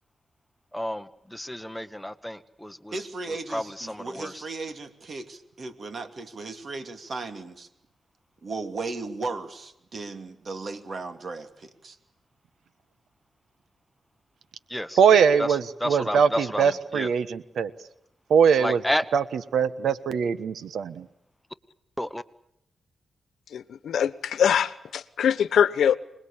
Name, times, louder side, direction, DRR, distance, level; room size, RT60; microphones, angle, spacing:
voice 1, 0.7-2.9 3.5-4.3 14.7-15.0 15.4-15.5 15.8-17.1 18.6-19.0 22.0-22.2, equal, 5° left, 12 dB, 1.2 m, -31 dB
voice 2, 2.9-7.7 8.4-12.0, right 3 dB, 50° right, 8 dB, 2.7 m, -36 dB
voice 3, 15.0-17.7 18.3-18.8 19.1-19.2 19.5-21.0, right 7 dB, 85° right, 14 dB, 1.3 m, -21 dB
voice 4, 23.5-26.0, left 8 dB, 85° left, 16 dB, 1.1 m, -23 dB
26.5 x 21.0 x 8.7 m, 0.76 s
cardioid pair, 90°, 0 cm